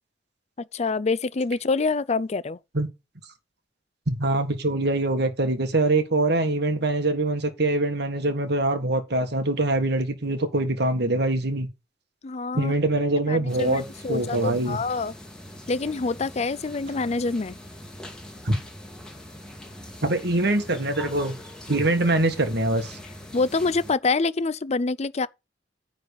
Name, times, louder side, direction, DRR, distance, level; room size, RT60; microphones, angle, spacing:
voice 1, 0.7-2.6 12.2-12.7 13.3-15.1 15.7-17.6 23.3-25.3, left 3 dB, 35° left, 0.5 m, -26 dB
voice 2, 4.1-11.7 12.5-14.8 18.5-18.6 20.0-21.4 21.7-23.0, right 2 dB, 60° right, 1.7 m, -24 dB
sound 1, 13.5-23.9, left 1 dB, 5° left, 2.5 m, -42 dB
10.0 x 4.0 x 6.6 m
head